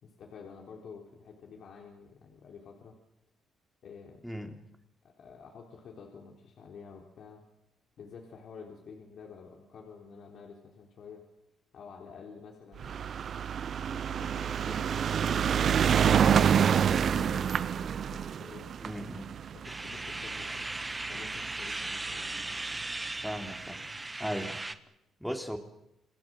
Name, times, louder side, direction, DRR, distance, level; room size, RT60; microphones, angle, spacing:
voice 1, 0.0-3.0 3.8-4.2 5.0-7.4 8.0-11.3 11.7-13.2 13.8-17.5 18.0-18.7 19.5-20.7 21.1-22.6 23.8-23.9 24.3-24.4, left 5 dB, 65° left, 0 dB, 4.2 m, -50 dB
voice 2, 4.2-4.6 18.8-19.3 23.2-23.8 24.2-24.6 25.2-25.6, equal, ahead, 4 dB, 3.6 m, -36 dB
sound 1, 12.8-21.3 22.1-22.2 22.4-22.5 22.7-22.8, right 8 dB, 55° right, 0.9 m, -27 dB
sound 2, 19.6-24.8, right 2 dB, 15° right, 1.5 m, -37 dB
28.5 x 20.0 x 7.9 m, 0.86 s
cardioid pair, 90°, 0 cm